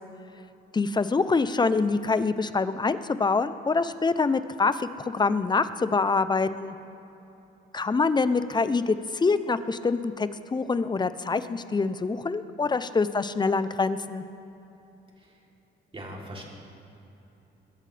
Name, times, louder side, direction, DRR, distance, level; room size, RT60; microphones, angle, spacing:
voice 1, 0.7-6.8 7.7-14.2, left 4 dB, 20° left, 13 dB, 0.6 m, -25 dB
voice 2, 15.9-16.4, right 1 dB, 25° right, -2 dB, 3.1 m, -40 dB
21.5 x 13.0 x 3.4 m, 3.0 s
cardioid pair, 90°, 20 cm